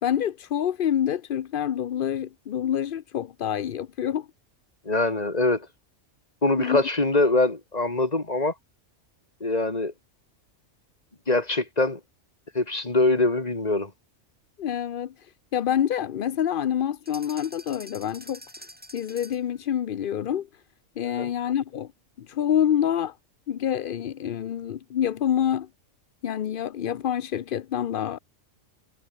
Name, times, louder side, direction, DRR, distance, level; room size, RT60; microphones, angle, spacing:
voice 1, 0.0-4.3 6.6-6.8 14.6-18.4 18.9-20.6 21.0-21.9 22.2-23.2 23.5-25.7 26.2-28.2, left 9 dB, 55° left, 0.7 m, -27 dB
voice 2, 4.8-5.7 6.4-8.5 9.4-9.9 11.3-12.0 12.5-13.9 21.2-21.3, left 2 dB, 30° left, 2.7 m, -23 dB
sound 1, 17.1-19.5, equal, 5° right, 3.7 m, -46 dB
omnidirectional pair, 1.3 m